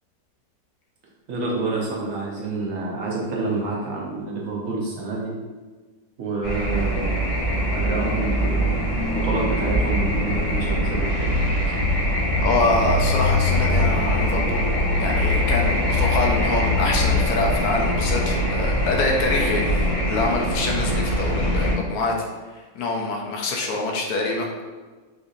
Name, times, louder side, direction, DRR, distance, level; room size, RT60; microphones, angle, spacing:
voice 1, 1.3-5.3 6.2-8.6 9.1-11.3, right 3 dB, 65° right, -3 dB, 1.0 m, -28 dB
sound 1, 6.4-21.7, left 1 dB, 60° left, 1.3 m, -22 dB
voice 2, 12.4-14.7 15.0-22.1 22.5-24.5, left 3 dB, 75° left, 0 dB, 1.0 m, -25 dB
3.8 x 2.6 x 2.5 m, 1.3 s
omnidirectional pair, 1.7 m